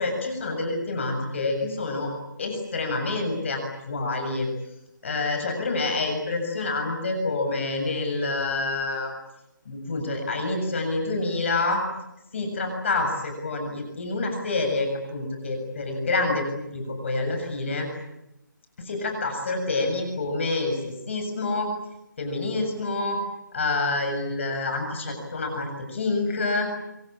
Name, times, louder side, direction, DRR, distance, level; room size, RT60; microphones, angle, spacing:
voice 1, 0.0-2.1 2.4-4.5 5.0-9.1 9.7-11.8 12.3-17.9 18.8-21.7 22.2-23.2 23.5-26.7, left 3 dB, 35° left, 4 dB, 7.3 m, -27 dB
26.0 x 26.0 x 8.7 m, 0.86 s
hypercardioid pair, 170°, 11 cm